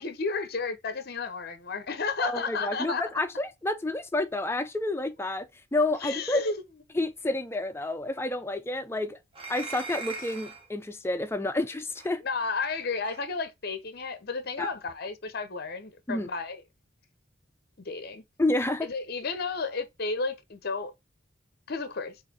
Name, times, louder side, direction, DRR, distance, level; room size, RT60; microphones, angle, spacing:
voice 1, 0.0-3.0 6.0-6.6 12.2-16.6 17.8-18.2 18.8-20.9 21.7-22.1, left 4 dB, 50° left, 0.8 m, -32 dB
voice 2, 2.2-5.5 5.7-6.5 7.0-9.2 9.5-12.2 14.6-14.7 16.1-16.3 18.4-18.9, left 2 dB, 10° left, 0.4 m, -29 dB
sound 1, 9.3-10.7 12.0-12.1 13.0-13.2, right 4 dB, 25° right, 0.9 m, -39 dB
4.9 x 2.6 x 4.2 m
head